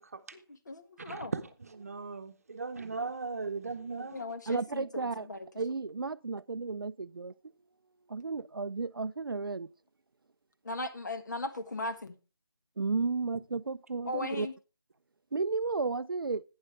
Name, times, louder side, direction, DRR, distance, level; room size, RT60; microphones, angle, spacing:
voice 1, 0.3-1.3 4.0-4.8 5.3-5.4 10.6-12.1 14.1-14.5, left 2 dB, 45° left, 1.4 m, -37 dB
voice 2, 1.0-4.2, right 4 dB, 35° right, 1.0 m, -38 dB
voice 3, 4.5-5.3 5.6-7.3 8.1-9.7 12.8-14.5 15.3-16.4, right 4 dB, 60° right, 0.5 m, -33 dB
12.0 x 9.7 x 3.3 m
figure-of-eight pair, 170°, 13 cm